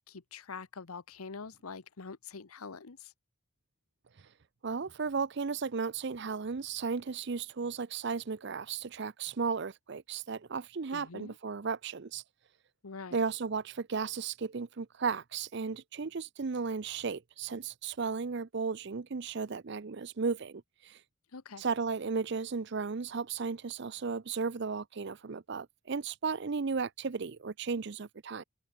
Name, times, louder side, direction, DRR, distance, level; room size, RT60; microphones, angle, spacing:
voice 1, 0.1-3.1 10.9-11.3 12.8-13.2 21.3-21.6, left 5 dB, 90° left, 1.0 m, -45 dB
voice 2, 4.6-12.2 13.1-21.0 21.6-28.4, right 5 dB, 55° right, 0.6 m, -35 dB
head